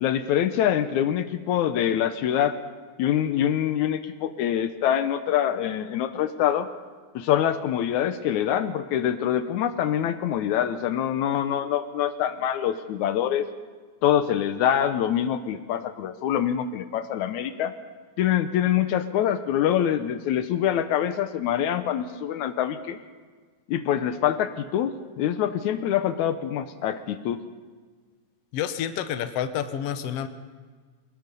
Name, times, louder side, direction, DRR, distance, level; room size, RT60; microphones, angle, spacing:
voice 1, 0.0-2.6 3.0-6.7 7.2-13.5 14.0-17.8 18.2-23.0 23.7-27.4, left 10 dB, 80° left, 10 dB, 2.1 m, -25 dB
voice 2, 28.5-30.3, left 9 dB, 65° left, 9 dB, 1.8 m, -29 dB
23.5 x 20.5 x 5.4 m, 1.5 s
omnidirectional pair, 3.5 m